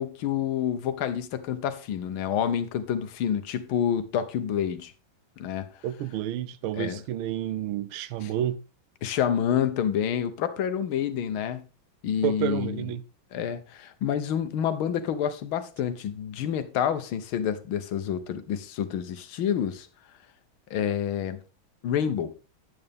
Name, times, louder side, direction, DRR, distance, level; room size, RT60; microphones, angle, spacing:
voice 1, 0.0-4.9 5.4-5.7 6.7-7.0 8.2-8.3 9.0-11.6 12.0-12.8 13.3-19.9 20.7-21.4 21.8-22.3, left 9 dB, 80° left, 1.7 m, -28 dB
voice 2, 5.8-8.6 12.2-13.0, right 11 dB, 85° right, 1.5 m, -30 dB
9.3 x 8.8 x 3.5 m
omnidirectional pair, 2.2 m